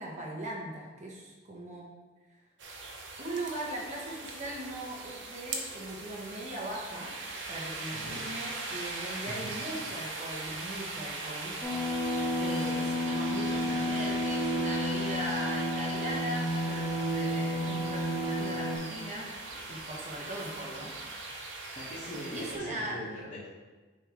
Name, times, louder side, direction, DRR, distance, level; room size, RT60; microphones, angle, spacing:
voice 1, 0.0-1.9 3.2-7.1 7.5-19.3 19.7-21.0 22.3-23.1, right 1 dB, 35° right, -3 dB, 1.1 m, -39 dB
sound 1, 2.6-22.6, right 3 dB, 80° right, 0.9 m, -40 dB
sound 2, 11.6-18.8, equal, 10° left, 1.4 m, -31 dB
voice 2, 21.7-23.5, equal, 30° left, -12 dB, 1.6 m, -41 dB
9.5 x 3.5 x 3.2 m, 1.3 s
head